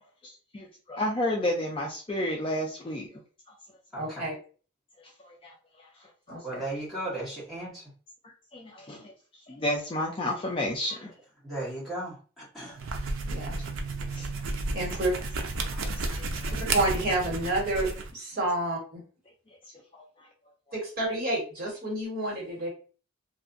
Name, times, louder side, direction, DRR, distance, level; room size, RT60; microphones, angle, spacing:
voice 1, 0.2-3.1 5.0-5.9 6.3-6.6 8.5-9.1 9.5-11.1 12.6-12.7 14.1-14.3 15.7-16.3 19.9-20.3, left 1 dB, 25° left, 0.4 m, -32 dB
voice 2, 4.0-4.3 6.3-6.6 13.2-13.5 14.1-14.2 14.7-15.1 16.7-19.0 20.7-22.7, right 2 dB, 45° right, 1.3 m, -29 dB
voice 3, 6.4-7.8 11.4-12.9, right 1 dB, ahead, 1.3 m, -36 dB
sound 1, 12.7-18.1, right 3 dB, 65° right, 0.5 m, -32 dB
2.7 x 2.4 x 2.5 m
head